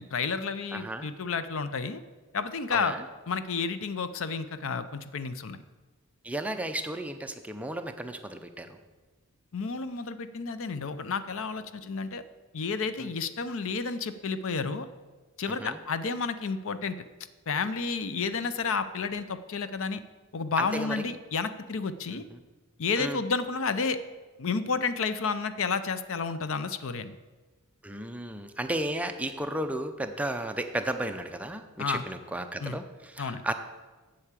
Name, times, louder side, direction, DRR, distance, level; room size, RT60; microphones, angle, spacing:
voice 1, 0.0-2.0 2.3-2.9 3.3-5.6 9.5-12.2 12.5-14.9 15.4-17.0 17.5-20.0 20.3-22.2 22.8-24.0 24.4-27.2 31.8-32.0 32.6-32.8 33.2-33.4, left 5 dB, 60° left, 13 dB, 0.6 m, -31 dB
voice 2, 0.7-1.1 2.7-3.0 6.2-8.7 13.0-13.1 15.5-15.8 20.6-21.0 22.1-22.2 23.0-23.2 27.8-33.5, right 1 dB, 5° right, 7 dB, 0.5 m, -34 dB
8.1 x 7.8 x 7.4 m, 1.3 s
head